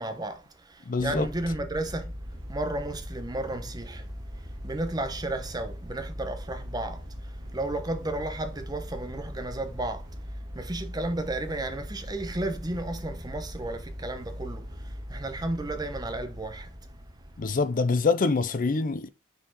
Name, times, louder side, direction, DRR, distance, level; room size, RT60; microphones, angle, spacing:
voice 1, 0.0-2.2 2.5-16.7, right 2 dB, 20° right, 0.9 m, -33 dB
voice 2, 0.9-1.3 17.4-19.1, left 4 dB, 45° left, 0.5 m, -25 dB
sound 1, 1.0-17.5, equal, 50° right, 2.3 m, -40 dB
6.2 x 4.5 x 4.8 m
head